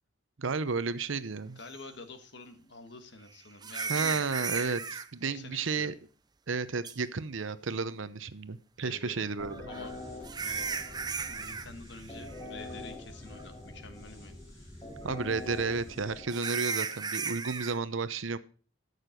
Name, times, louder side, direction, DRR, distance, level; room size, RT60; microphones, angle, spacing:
voice 1, 0.4-1.6 3.9-5.9 6.5-9.6 15.0-18.4, right 4 dB, 80° right, 14 dB, 0.8 m, -32 dB
voice 2, 1.5-4.3 5.2-5.9 8.8-9.3 9.7-9.9 10.4-10.7 11.3-14.8, left 3 dB, 60° left, 8 dB, 1.5 m, -48 dB
sound 1, 1.7-1.8 3.6-5.1 6.8-6.9 9.5-11.7 11.9-12.3 12.7-12.8 13.4-13.5 16.3-17.8, right 5 dB, 20° right, 0.6 m, -35 dB
sound 2, 9.4-17.0, left 2 dB, 15° left, 3.9 m, -45 dB
13.5 x 6.7 x 5.2 m, 0.39 s
head